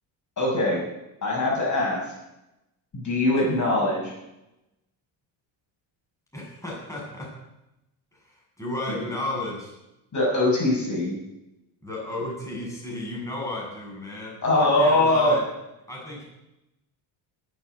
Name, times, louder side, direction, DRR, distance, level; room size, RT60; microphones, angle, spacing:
voice 1, 0.4-0.8 1.2-2.0 2.9-4.1 8.9-9.1 10.1-11.1 14.4-15.3, left 2 dB, 35° left, -3 dB, 6.5 m, -22 dB
voice 2, 6.3-7.3 8.2-9.8 11.8-15.4 15.9-16.2, left 1 dB, 5° left, -4 dB, 7.3 m, -33 dB
19.0 x 7.7 x 8.1 m, 0.93 s
cardioid pair, 100°, 47 cm